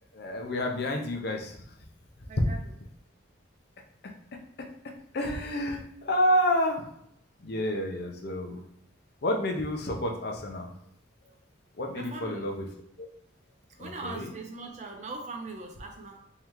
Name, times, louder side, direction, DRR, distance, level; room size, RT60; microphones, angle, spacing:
voice 1, 0.1-1.6 2.4-2.5 5.1-6.8 7.4-8.6 9.2-10.7 11.8-12.7 13.0-13.1 13.8-14.3, equal, 55° left, 2 dB, 0.6 m, -29 dB
voice 2, 2.3-2.6 11.9-12.5 13.8-16.2, right 3 dB, 35° right, 3 dB, 0.5 m, -40 dB
3.6 x 3.2 x 3.0 m, 0.71 s
head